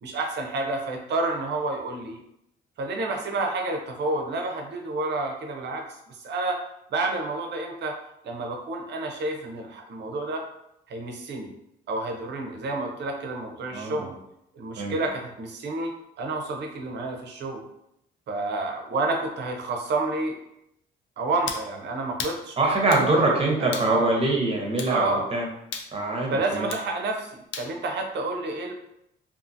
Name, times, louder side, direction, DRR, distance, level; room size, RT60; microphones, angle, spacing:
voice 1, 0.0-2.2 2.8-6.6 6.9-8.0 8.2-10.4 10.9-11.5 11.9-14.1 14.6-15.9 16.2-17.6 18.3-20.3 21.2-24.1 24.9-25.3 26.3-28.7, right 2 dB, 60° right, 2 dB, 0.6 m, -29 dB
voice 2, 13.7-14.1 14.8-14.9 22.6-25.4 25.9-26.7, right 2 dB, 30° right, -1 dB, 0.8 m, -24 dB
sound 1, 21.5-21.7 22.2-22.4 22.9-23.1 23.7-23.9 24.8-25.0 25.7-25.9 26.7-26.9 27.5-27.7, left 6 dB, 75° left, 0.4 m, -34 dB
2.6 x 2.5 x 2.6 m, 0.79 s
cardioid pair, 90°, 20 cm